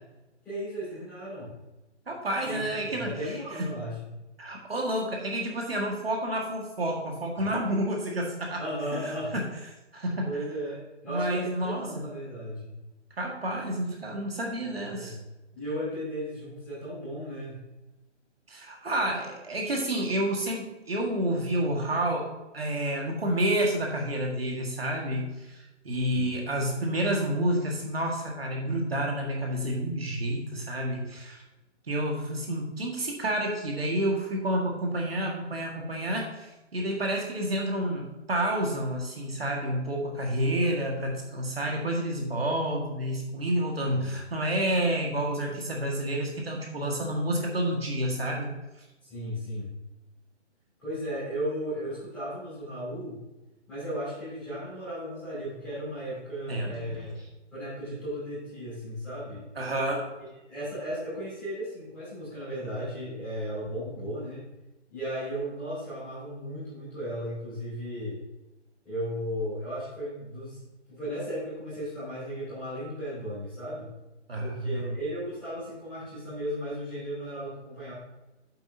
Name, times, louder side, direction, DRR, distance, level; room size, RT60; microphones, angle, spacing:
voice 1, 0.4-1.5 2.4-4.0 7.4-7.5 8.6-9.3 10.2-12.7 14.8-15.2 15.5-17.5 26.1-26.4 31.1-31.2 43.9-44.2 49.0-49.7 50.8-53.2 53.7-57.2 57.5-59.4 60.5-64.4 64.9-68.2 68.8-70.6 70.9-73.9 74.4-77.9, equal, 5° left, -14 dB, 3.1 m, -35 dB
voice 2, 2.1-3.1 3.6-3.7 4.4-8.6 8.9-9.4 9.9-10.3 11.1-11.9 13.2-15.2 18.5-31.4 31.9-48.5 56.5-57.0 59.6-60.1 74.3-74.9, right 1 dB, 55° right, -1 dB, 1.8 m, -29 dB
9.4 x 7.8 x 2.8 m, 1.0 s
hypercardioid pair, 175°, 36 cm